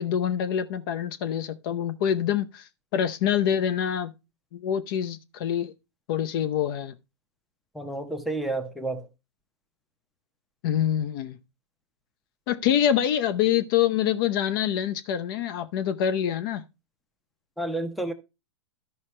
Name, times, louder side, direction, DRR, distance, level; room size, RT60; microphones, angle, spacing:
voice 1, 0.0-4.1 4.5-5.7 6.1-6.9 10.6-11.4 12.5-16.6, left 9 dB, 50° left, 0.7 m, -26 dB
voice 2, 7.7-9.1 17.6-18.1, right 2 dB, ahead, 0.8 m, -30 dB
12.5 x 5.5 x 3.2 m
hypercardioid pair, 130°, 15 cm